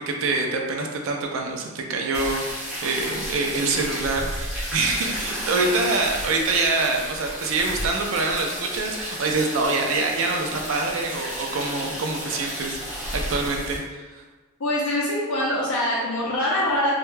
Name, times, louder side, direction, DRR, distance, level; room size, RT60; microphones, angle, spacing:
voice 1, 0.0-14.2, right 3 dB, 65° right, 2 dB, 0.3 m, -25 dB
sound 1, 2.1-13.8, equal, 5° right, 0.7 m, -32 dB
voice 2, 14.6-16.9, left 1 dB, 75° left, -7 dB, 0.5 m, -24 dB
2.2 x 2.1 x 3.1 m, 1.3 s
head